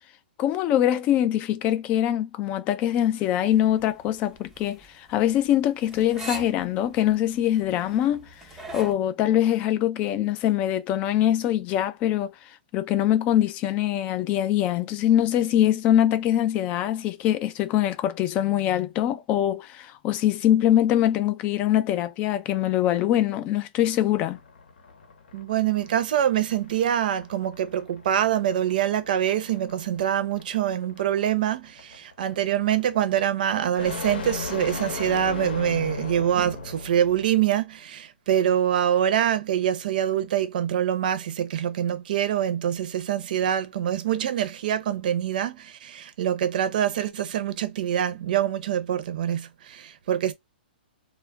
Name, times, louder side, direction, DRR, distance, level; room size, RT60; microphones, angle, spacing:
voice 1, 0.4-8.3 8.7-12.3 12.7-24.4, left 12 dB, 25° left, 0.4 m, -23 dB
sound 1, 3.5-8.9, right 2 dB, 5° right, 0.7 m, -41 dB
sound 2, 23.8-37.3, left 5 dB, 70° left, 0.8 m, -38 dB
voice 2, 25.3-50.3, right 10 dB, 60° right, 0.6 m, -25 dB
2.3 x 2.0 x 3.4 m
hypercardioid pair, 145°, 5 cm